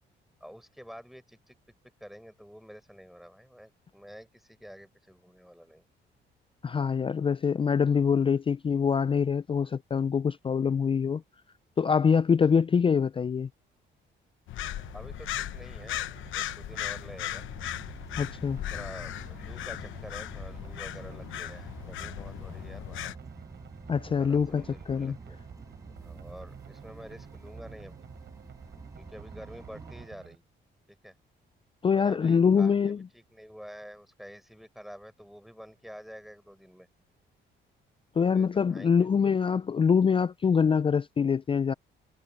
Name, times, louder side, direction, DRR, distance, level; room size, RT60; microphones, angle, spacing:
voice 1, 0.4-1.6 2.0-5.8 14.9-17.4 18.7-23.1 24.2-25.4 26.0-28.1 29.0-30.4 30.9-31.1 31.9-36.9 38.2-39.1, equal, ahead, 5.2 m, -48 dB
voice 2, 6.6-11.2 11.8-13.5 18.2-18.6 23.9-25.2 31.8-33.0 38.2-41.7, left 6 dB, 25° left, 0.4 m, -24 dB
sound 1, 14.5-23.1, left 13 dB, 80° left, 0.9 m, -37 dB
sound 2, 14.6-30.4, right 9 dB, 65° right, 3.4 m, -50 dB
sound 3, 17.5-30.1, right 2 dB, 15° right, 5.0 m, -48 dB
cardioid pair, 90°, 20 cm